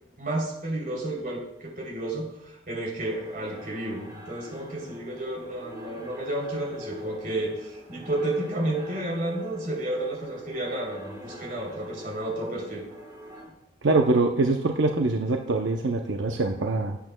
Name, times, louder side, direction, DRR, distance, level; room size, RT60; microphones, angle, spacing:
voice 1, 0.2-2.3 2.7-12.8, right 1 dB, 50° right, -1 dB, 3.1 m, -31 dB
sound 1, 3.0-13.4, equal, 20° right, 4.1 m, -44 dB
voice 2, 13.8-17.0, right 3 dB, 80° right, 3 dB, 0.6 m, -24 dB
17.5 x 8.5 x 2.2 m, 0.86 s
head